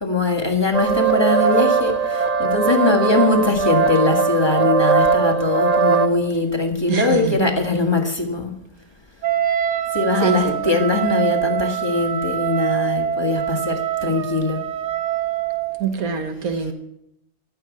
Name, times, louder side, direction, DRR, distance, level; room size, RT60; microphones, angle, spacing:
voice 1, 0.0-8.5 9.9-14.6, left 3 dB, 20° left, 3 dB, 1.8 m, -21 dB
sound 1, 0.7-6.1, right 5 dB, 30° right, 0.9 m, -19 dB
voice 2, 6.9-7.5 10.2-10.8 15.8-16.7, right 6 dB, 85° right, 7 dB, 1.7 m, -24 dB
Wind instrument woodwind instrument, 9.2-15.8, right 11 dB, 60° right, 1.0 m, -24 dB
14.0 x 7.2 x 8.4 m, 0.81 s
omnidirectional pair, 1.5 m